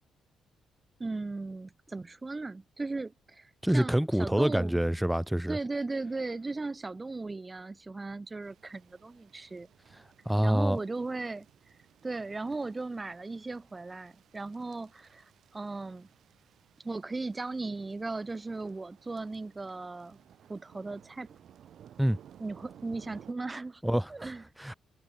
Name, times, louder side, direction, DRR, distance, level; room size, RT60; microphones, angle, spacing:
voice 1, 1.0-4.8 5.5-9.7 10.4-11.5 12.0-15.2 15.5-16.1 16.8-20.2 20.5-21.3 22.4-23.8 24.1-24.4, right 3 dB, 25° right, 1.3 m, -37 dB
voice 2, 3.6-5.6 10.3-10.8 22.0-22.2 23.8-24.3 24.6-24.7, equal, 5° right, 0.6 m, -26 dB
sound 1, 8.4-23.3, right 9 dB, 65° right, 1.0 m, -58 dB
supercardioid pair, 55°, 0 cm